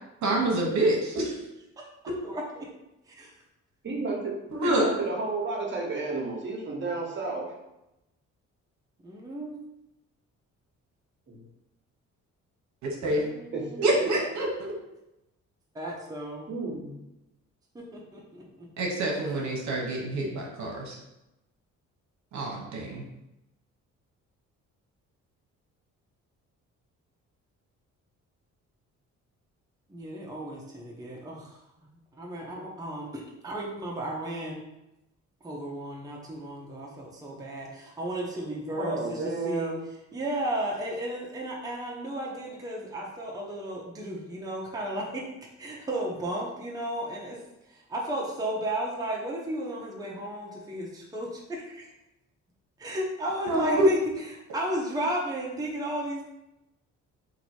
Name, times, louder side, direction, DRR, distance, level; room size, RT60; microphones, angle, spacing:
voice 1, 0.2-1.3 4.5-4.9 12.8-13.2 13.8-14.5 18.8-20.9 22.3-23.0 53.5-53.9, right 1 dB, 70° right, -1 dB, 1.0 m, -26 dB
voice 2, 2.2-2.7 3.1-3.3 9.0-9.6 13.0-14.0 15.7-16.5 17.7-18.7 29.9-31.9 32.1-34.6 35.4-39.7 40.1-45.2 45.6-47.4 47.7-51.9 52.8-56.3, right 1 dB, 10° right, -3 dB, 0.7 m, -34 dB
voice 3, 3.8-4.3 4.7-7.5 11.3-11.4 13.5-14.1 16.5-16.9 38.8-39.8, right 3 dB, 40° right, -1 dB, 1.2 m, -31 dB
2.9 x 2.7 x 4.3 m, 0.92 s
cardioid pair, 90°, 30 cm